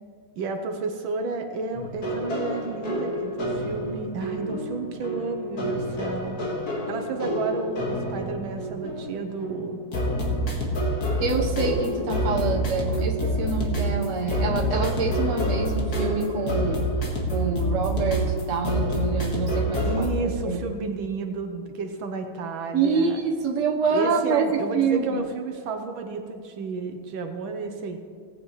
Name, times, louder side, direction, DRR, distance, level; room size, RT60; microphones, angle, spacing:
voice 1, 0.4-6.4 6.9-9.8 19.8-23.2 23.9-28.0, right 4 dB, 75° right, 5 dB, 1.5 m, -32 dB
sound 1, 1.7-20.1, equal, 45° left, 2.1 m, -27 dB
voice 2, 11.2-16.8 17.3-20.7 22.7-25.3, right 4 dB, 45° right, -1 dB, 1.3 m, -26 dB
18.0 x 9.0 x 3.2 m, 2.2 s
omnidirectional pair, 2.3 m